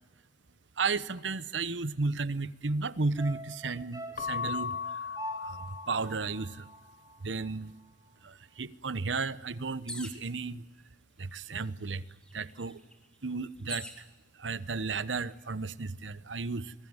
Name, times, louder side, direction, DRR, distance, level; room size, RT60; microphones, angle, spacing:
voice 1, 0.8-6.7 7.2-7.7 8.2-10.6 11.2-12.0 12.3-12.8 13.2-14.0 14.4-16.7, right 4 dB, 90° right, 1.0 m, -34 dB
sound 1, 3.2-7.6 7.9-8.0, right 1 dB, 20° right, 2.6 m, -44 dB
Keyboard (musical) / Bell, 4.2-6.6, left 6 dB, 50° left, 0.9 m, -37 dB
sound 2, 9.9-10.3 11.2-11.3 11.6-14.0 14.8-15.3, left 1 dB, 5° left, 3.3 m, -44 dB
26.0 x 21.0 x 9.7 m
head